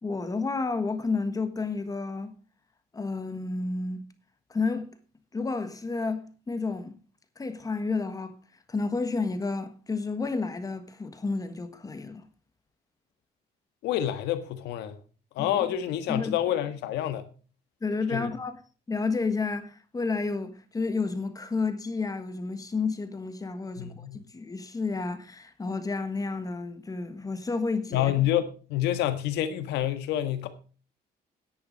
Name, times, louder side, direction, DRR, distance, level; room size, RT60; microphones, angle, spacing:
voice 1, 0.0-2.3 2.9-4.1 4.5-4.9 5.3-7.0 7.4-8.4 8.7-12.2 15.4-15.7 16.1-16.4 17.8-18.6 18.9-24.1 24.3-28.1, left 4 dB, 20° left, 1.5 m, -31 dB
voice 2, 13.8-15.0 15.3-17.3 18.1-18.3 23.7-24.2 27.9-30.5, left 12 dB, 85° left, 1.6 m, -28 dB
10.5 x 8.7 x 5.2 m
cardioid pair, 110°, 17 cm